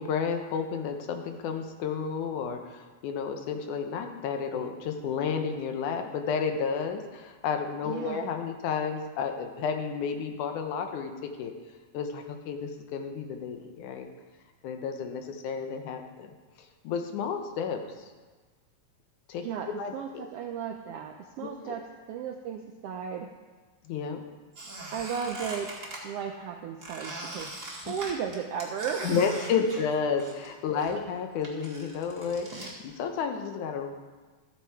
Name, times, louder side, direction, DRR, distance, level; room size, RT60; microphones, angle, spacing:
voice 1, 0.0-11.5 11.9-14.1 14.6-16.3 16.8-18.1 19.3-19.4 19.8-20.2 21.4-21.8 23.8-24.2 27.8-27.9 29.0-34.0, left 6 dB, 90° left, 5 dB, 2.4 m, -31 dB
voice 2, 7.9-8.2 19.4-23.3 24.9-25.7 26.0-27.5 27.9-29.3, right 7 dB, 90° right, 3 dB, 1.3 m, -35 dB
Squeak, 24.5-26.0 26.8-30.5 30.8-32.7, right 2 dB, 30° right, 1.9 m, -41 dB
14.0 x 8.0 x 4.7 m, 1.4 s
omnidirectional pair, 3.4 m